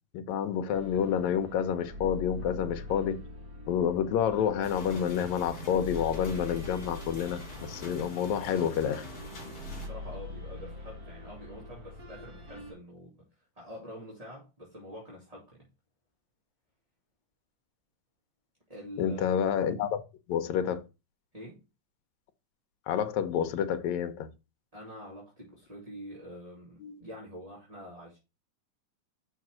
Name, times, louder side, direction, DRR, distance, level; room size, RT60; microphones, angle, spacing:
voice 1, 0.1-3.2 3.7-9.1 19.0-20.0 20.3-20.8 22.9-24.3 26.8-27.0, left 8 dB, 75° left, 2.1 m, -29 dB
sound 1, 0.7-12.7, left 2 dB, 30° right, 2.4 m, -43 dB
sound 2, 4.6-9.9, left 1 dB, 35° left, 3.1 m, -44 dB
voice 2, 9.8-15.7 18.7-19.4 21.3-21.6 24.7-28.2, equal, 15° right, 2.2 m, -46 dB
5.9 x 5.0 x 6.2 m
omnidirectional pair, 3.4 m